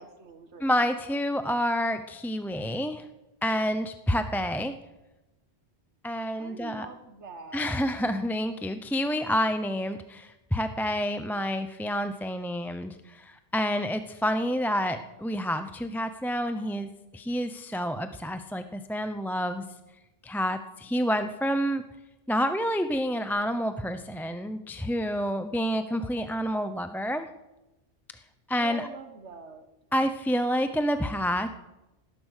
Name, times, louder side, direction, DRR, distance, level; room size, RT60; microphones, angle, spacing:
voice 1, 0.0-0.9 6.4-7.8 28.5-29.7, right 4 dB, 85° right, 8 dB, 1.7 m, -44 dB
voice 2, 0.6-3.1 3.4-4.7 6.0-6.9 7.5-19.6 20.2-21.8 22.3-27.3 28.5-28.9 29.9-31.5, equal, ahead, 9 dB, 0.5 m, -28 dB
18.5 x 10.5 x 6.5 m, 0.99 s
omnidirectional pair, 1.2 m